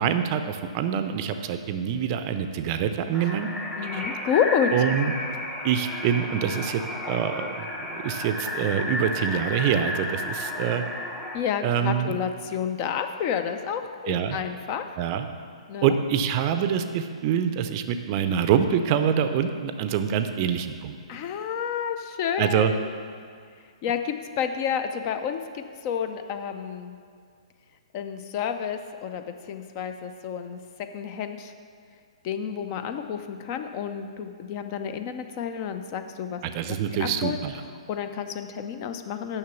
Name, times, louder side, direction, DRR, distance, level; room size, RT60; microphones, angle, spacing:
voice 1, 0.0-3.5 3.9-4.0 4.7-5.1 5.6-10.8 11.6-12.2 14.1-14.4 15.0-15.3 15.8-20.9 22.4-22.7 36.4-37.5, right 8 dB, 40° right, 9 dB, 0.5 m, -25 dB
sound 1, 3.1-11.4, left 1 dB, 10° left, 0.9 m, -32 dB
voice 2, 3.8-4.7 11.3-14.8 15.7-15.9 21.1-22.9 23.8-27.0 27.9-30.6 30.9-31.5 32.2-36.4 36.7-37.4 37.9-39.4, left 8 dB, 35° left, 8 dB, 0.6 m, -30 dB
6.5 x 6.1 x 6.9 m, 2.2 s
figure-of-eight pair, 125°, 3 cm